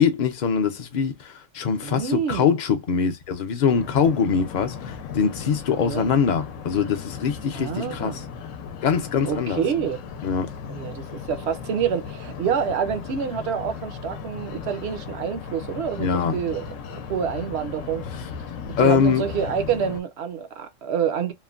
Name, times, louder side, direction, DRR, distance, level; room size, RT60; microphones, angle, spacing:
voice 1, 0.0-8.2 8.8-9.6 10.2-10.5 16.0-16.4 18.8-19.2, left 6 dB, 50° left, 0.6 m, -23 dB
voice 2, 1.8-2.6 5.8-6.0 7.5-8.2 9.3-10.0 10.7-16.6 17.1-18.0 18.8-21.3, right 7 dB, 65° right, 0.8 m, -27 dB
sound 1, 3.7-20.0, left 6 dB, 80° left, 0.9 m, -37 dB
3.1 x 2.1 x 2.3 m
omnidirectional pair, 1.3 m